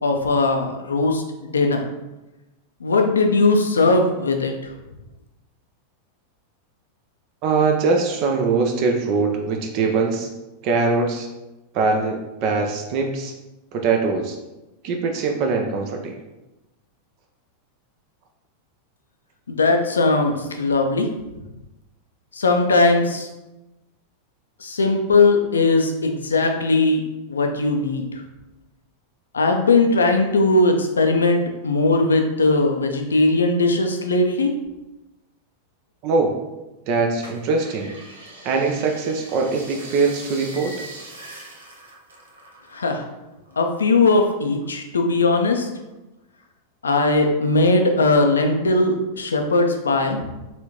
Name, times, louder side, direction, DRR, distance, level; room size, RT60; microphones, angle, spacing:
voice 1, 0.0-1.9 2.8-4.7 19.5-21.1 22.3-23.3 24.6-27.0 27.3-28.2 29.3-34.5 42.7-43.0 43.6-45.7 46.8-50.2, left 3 dB, 70° left, 4 dB, 0.5 m, -19 dB
voice 2, 7.4-10.3 10.6-11.3 11.7-13.3 13.7-14.4 14.8-16.2 36.0-36.3 36.9-37.9 38.4-40.7, right 4 dB, 40° right, 3 dB, 0.5 m, -22 dB
sound 1, 37.2-43.1 43.3-44.6 45.1-45.9 46.4-46.5, right 2 dB, 70° right, 0.8 m, -42 dB
4.2 x 3.6 x 2.9 m, 1.0 s
figure-of-eight pair, 90°, 0 cm